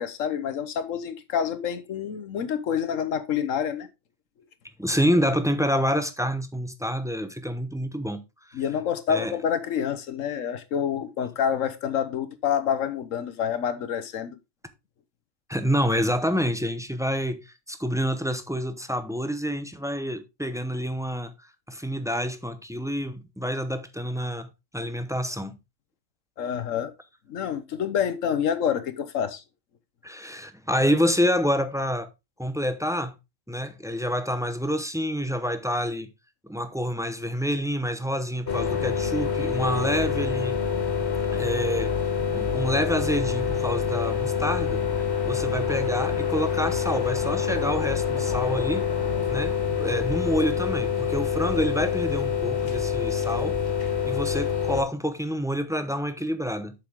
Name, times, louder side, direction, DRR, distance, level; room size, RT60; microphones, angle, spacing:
voice 1, 0.0-3.9 8.5-14.4 26.4-26.9 27.3-29.4, left 8 dB, 85° left, 1.3 m, -27 dB
voice 2, 4.8-8.2 8.5-8.6 9.1-9.4 15.5-21.3 21.7-24.5 24.7-25.6 30.0-32.1 32.4-33.1 33.5-36.1 36.5-40.6 41.3-41.9 42.3-44.8 45.2-48.9 49.3-53.6 54.1-56.7, equal, 5° right, 0.6 m, -27 dB
electrical substation hum, 38.5-54.8, left 7 dB, 60° left, 2.0 m, -26 dB
7.6 x 6.7 x 3.6 m
omnidirectional pair, 1.3 m